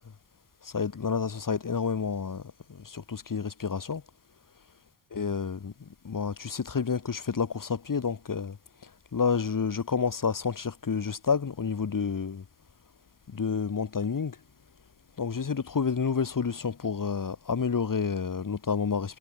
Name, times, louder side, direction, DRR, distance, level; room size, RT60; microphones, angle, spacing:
voice 1, 0.6-2.4 2.7-4.0 5.1-5.7 6.0-8.6 9.1-12.4 13.3-14.4 15.2-19.2, left 6 dB, 45° left, 6.1 m, -29 dB
supercardioid pair, 65°, 46 cm